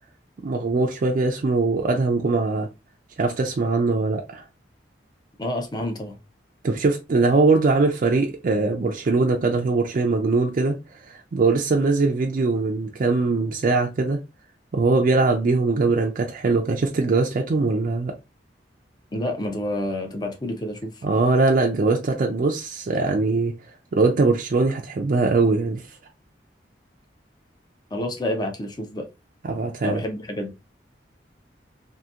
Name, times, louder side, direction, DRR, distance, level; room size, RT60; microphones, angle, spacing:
voice 1, 0.4-2.7 3.2-4.4 6.6-10.8 11.0-14.2 14.7-18.1 21.0-23.5 23.9-25.9 29.4-30.0, right 3 dB, 45° right, 0.4 m, -21 dB
voice 2, 5.4-6.2 19.1-21.0 27.9-29.1 29.8-30.5, left 1 dB, 25° left, 0.5 m, -29 dB
2.8 x 2.6 x 2.4 m
head